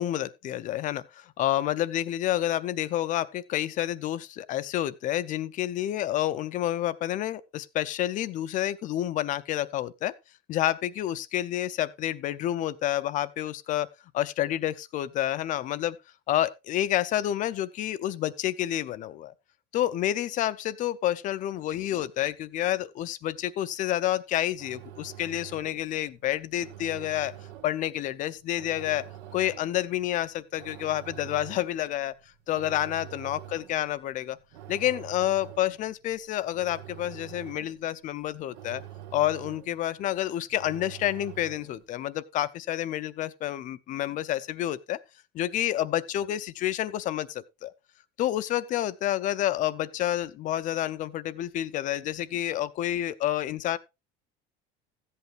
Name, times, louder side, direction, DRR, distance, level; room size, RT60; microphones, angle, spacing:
voice 1, 0.0-10.1 10.5-16.0 16.3-19.3 19.7-27.3 27.6-29.1 29.3-32.1 32.5-34.4 34.7-38.8 39.1-45.0 45.3-47.7 48.2-53.8, left 13 dB, 40° left, 0.5 m, -29 dB
sound 1, 24.3-41.9, right 12 dB, 85° right, 1.2 m, -46 dB
14.0 x 8.2 x 3.2 m
cardioid pair, 145°, 20 cm